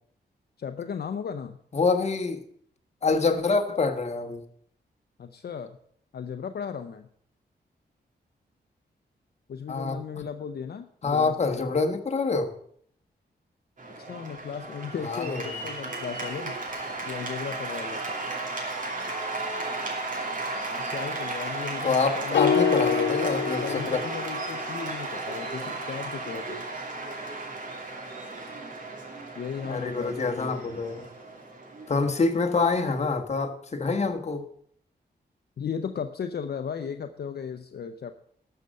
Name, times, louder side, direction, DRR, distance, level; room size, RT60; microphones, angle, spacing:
voice 1, 0.6-1.6 5.2-5.8 6.1-7.1 9.5-11.7 14.0-16.6 17.1-18.2 20.8-23.0 23.6-26.7 29.4-30.8 35.6-38.2, left 7 dB, 65° left, 7 dB, 0.6 m, -36 dB
voice 2, 1.7-2.4 3.0-4.4 9.7-10.0 11.0-12.5 15.0-15.4 21.8-24.0 29.7-31.0 31.9-34.4, left 4 dB, 40° left, 6 dB, 1.4 m, -26 dB
Cheering / Applause, 13.8-33.0, right 2 dB, 50° right, 2.7 m, -34 dB
sound 1, 22.3-24.7, left 7 dB, 90° left, 1.0 m, -26 dB
12.5 x 6.7 x 6.4 m, 0.64 s
wide cardioid pair, 95°, 18 cm